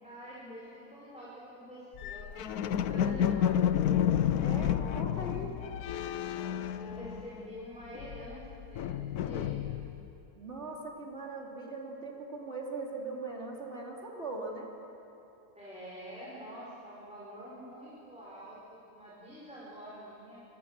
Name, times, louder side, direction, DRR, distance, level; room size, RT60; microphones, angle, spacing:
voice 1, 0.0-3.8 6.8-9.8 15.6-20.4, equal, 5° right, -8 dB, 5.5 m, -47 dB
sound 1, 2.0-7.6 7.9-10.1, left 9 dB, 70° left, 1.2 m, -31 dB
voice 2, 4.4-5.5 10.3-14.7, right 2 dB, 40° right, -2 dB, 3.7 m, -40 dB
27.0 x 24.0 x 7.6 m, 2.8 s
omnidirectional pair, 1.7 m